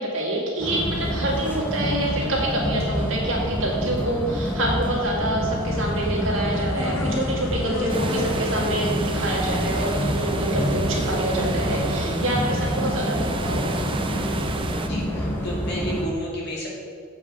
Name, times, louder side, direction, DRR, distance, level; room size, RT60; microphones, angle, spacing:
voice 1, 0.0-13.9, right 1 dB, 70° right, -3 dB, 2.2 m, -26 dB
sound 1, 0.6-16.0, equal, 10° left, 1.0 m, -27 dB
sound 2, 5.6-10.9, left 2 dB, 85° left, 1.0 m, -37 dB
sound 3, 7.9-14.9, right 2 dB, 25° right, 0.5 m, -31 dB
voice 2, 14.8-16.7, equal, 55° left, -4 dB, 2.4 m, -31 dB
7.8 x 5.3 x 6.7 m, 2.1 s
head